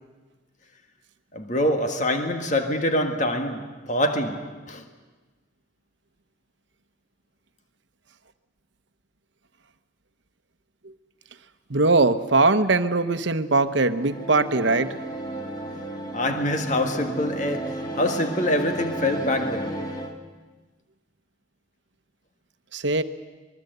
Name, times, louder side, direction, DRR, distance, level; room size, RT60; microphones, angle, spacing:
voice 1, 1.3-4.8 16.1-19.9, left 1 dB, 40° left, 1.8 m, -25 dB
voice 2, 11.7-15.0 22.7-23.0, right 3 dB, 70° right, 1.0 m, -21 dB
sound 1, 13.8-20.1, right 1 dB, 20° left, 1.8 m, -33 dB
24.0 x 22.0 x 8.0 m
head